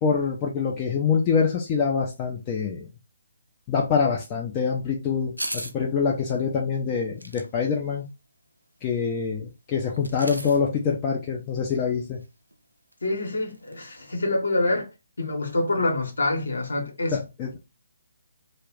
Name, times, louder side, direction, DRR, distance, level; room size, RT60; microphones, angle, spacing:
voice 1, 0.0-2.9 3.7-8.0 8.8-12.2 17.1-17.6, left 6 dB, 20° left, 0.4 m, -25 dB
sound 1, 5.4-5.7 7.2-7.5 10.0-10.6 12.2-12.3 12.5-12.6 12.9-13.0 13.5-13.9 14.2-14.3, right 1 dB, 85° right, 0.4 m, -35 dB
voice 2, 13.0-14.9 15.2-17.2, left 2 dB, 60° left, 0.8 m, -26 dB
2.3 x 2.0 x 3.5 m
figure-of-eight pair, 140°, 0 cm